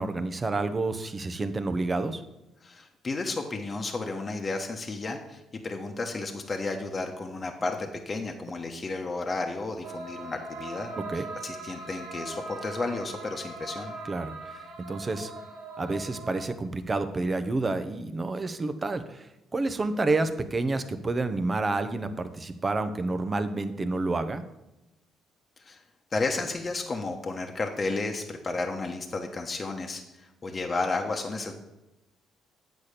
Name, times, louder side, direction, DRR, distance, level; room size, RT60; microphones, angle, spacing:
voice 1, 0.0-2.2 11.1-11.3 14.1-14.5 14.8-15.3 15.8-24.4, right 3 dB, 30° right, 10 dB, 0.8 m, -29 dB
voice 2, 2.6-10.9 11.1-14.0 25.6-25.8 26.1-31.5, left 3 dB, 35° left, 3 dB, 1.1 m, -32 dB
sound 1, 9.8-16.5, right 3 dB, 85° right, 1.8 m, -40 dB
8.4 x 4.2 x 6.6 m, 0.95 s
supercardioid pair, 75°, 0 cm